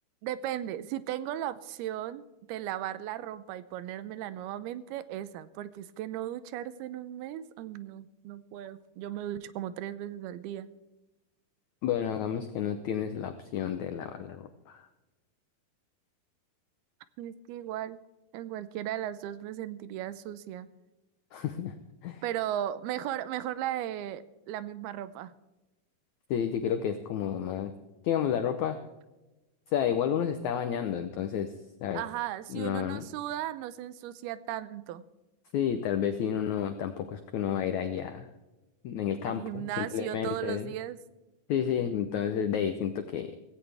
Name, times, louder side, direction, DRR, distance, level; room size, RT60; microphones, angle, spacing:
voice 1, 0.2-10.7 17.2-18.0 18.3-20.7 22.2-25.3 31.9-35.0 39.3-41.0, right 12 dB, 85° right, 15 dB, 2.6 m, -36 dB
voice 2, 11.8-14.9 21.3-21.7 22.0-22.2 26.3-27.7 28.0-28.8 29.7-31.5 31.8-32.0 32.5-33.0 35.5-38.3 38.8-40.7 41.5-43.4, left 9 dB, 90° left, 7 dB, 1.6 m, -31 dB
16.5 x 16.5 x 3.4 m, 1.0 s
omnidirectional pair, 4.5 m